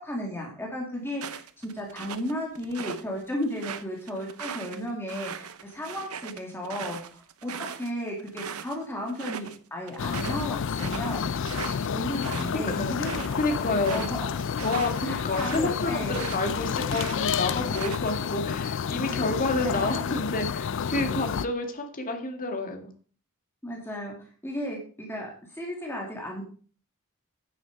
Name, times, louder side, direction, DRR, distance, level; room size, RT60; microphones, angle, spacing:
voice 1, 0.0-11.3 11.9-13.4 13.7-14.3 15.0-16.2 16.5-16.6 19.1-20.2 23.6-26.4, left 1 dB, 10° left, -1 dB, 2.4 m, -34 dB
sound 1, 1.1-3.0 3.4-8.8 9.1-9.6 9.9-16.5 16.9-18.3, right 7 dB, 80° right, 0.8 m, -39 dB
sound 2, 10.0-21.5, left 7 dB, 60° left, 0.4 m, -30 dB
voice 2, 12.5-14.0 14.6-22.9, left 2 dB, 40° left, 4 dB, 2.1 m, -29 dB
9.5 x 9.3 x 4.7 m, 0.42 s
head